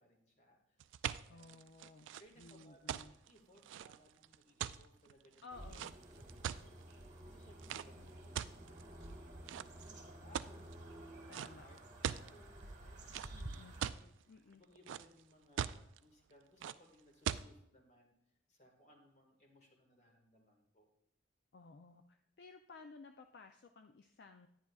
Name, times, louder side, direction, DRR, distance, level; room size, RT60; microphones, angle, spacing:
voice 1, 0.0-1.6 2.2-5.8 6.2-6.7 7.2-13.4 13.8-18.1 18.5-20.9, equal, 40° left, 2 dB, 1.7 m, -66 dB
sound 1, 0.8-6.9 7.6-7.9 8.3-9.0 9.5-9.9 10.3-10.7 11.3-11.5 11.8-12.3 13.1-14.0 14.5-15.2 15.6-16.0 16.6-16.7 17.2-17.4, right 9 dB, 85° right, 0.3 m, -41 dB
voice 2, 1.3-2.1 2.4-3.1 5.4-6.0 8.0-8.1 11.3-11.6 13.3-13.7 14.3-14.6 21.5-24.5, left 3 dB, 60° left, 6 dB, 0.4 m, -56 dB
sound 2, 5.5-13.9, right 1 dB, 40° right, 1.3 m, -52 dB
10.5 x 9.6 x 2.3 m, 0.76 s
head